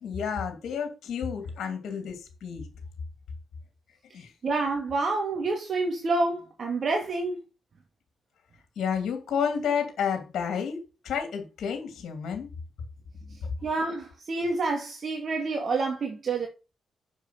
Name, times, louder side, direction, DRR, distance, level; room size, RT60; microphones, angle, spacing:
voice 1, 0.0-2.7 4.1-4.3 8.8-12.5 13.4-13.5, left 7 dB, 75° left, 2.5 m, -31 dB
voice 2, 4.4-7.4 13.6-16.5, right 3 dB, 55° right, 2.4 m, -28 dB
7.4 x 6.7 x 5.7 m
supercardioid pair, 55°, 0 cm